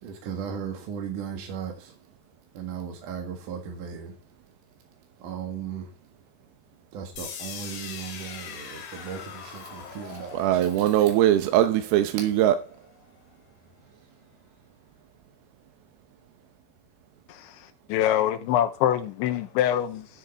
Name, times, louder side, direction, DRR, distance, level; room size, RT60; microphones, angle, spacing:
voice 1, 0.0-1.9 2.5-4.1 5.2-5.9 6.9-11.0, right 7 dB, 60° right, 2.4 m, -36 dB
sound 1, 7.2-13.1, left 7 dB, 65° left, 4.0 m, -42 dB
voice 2, 10.3-12.6, right 12 dB, 75° right, 2.3 m, -21 dB
voice 3, 17.3-20.1, left 11 dB, 90° left, 3.4 m, -25 dB
13.5 x 8.4 x 4.0 m
omnidirectional pair, 5.3 m